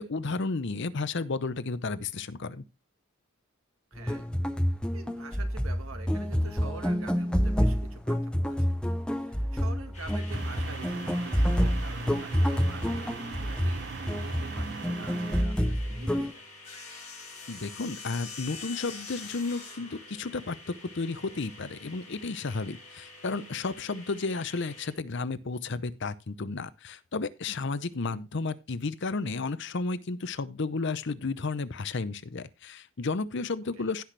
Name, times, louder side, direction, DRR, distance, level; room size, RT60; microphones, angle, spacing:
voice 1, 0.0-2.6 17.5-34.0, left 3 dB, 55° left, 0.7 m, -33 dB
voice 2, 3.9-4.3 4.9-8.8 9.1-13.1 13.4-16.5 27.9-28.2 33.7-33.9, right 3 dB, 80° right, 1.8 m, -47 dB
sound 1, 4.0-16.3, equal, 5° left, 0.6 m, -28 dB
sound 2, 9.9-24.9, left 3 dB, 30° left, 5.9 m, -46 dB
sound 3, 10.3-15.4, right 6 dB, 50° right, 0.4 m, -40 dB
16.0 x 5.9 x 3.3 m
head